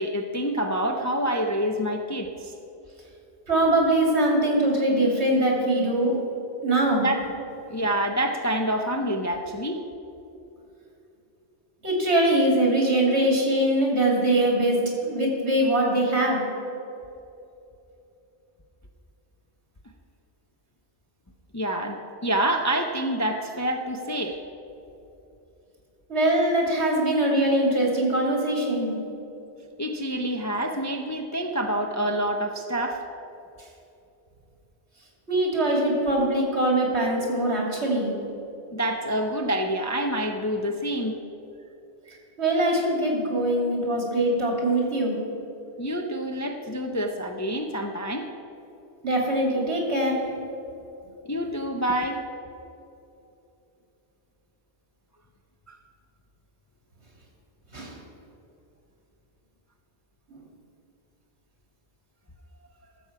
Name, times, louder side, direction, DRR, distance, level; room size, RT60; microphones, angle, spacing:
voice 1, 0.0-2.5 6.9-7.2 7.7-9.8 21.5-24.4 29.8-33.0 38.7-41.2 42.1-42.2 45.8-48.3 51.3-52.2 55.7-55.8, right 1 dB, 20° left, 3 dB, 0.4 m, -27 dB
voice 2, 3.5-6.1 6.6-7.1 11.8-16.4 26.1-28.9 35.3-38.1 42.4-45.1 49.0-50.2 57.7-58.0 60.3-60.4, right 1 dB, 75° right, -1 dB, 2.8 m, -22 dB
13.5 x 7.2 x 5.7 m, 2.8 s
omnidirectional pair, 1.1 m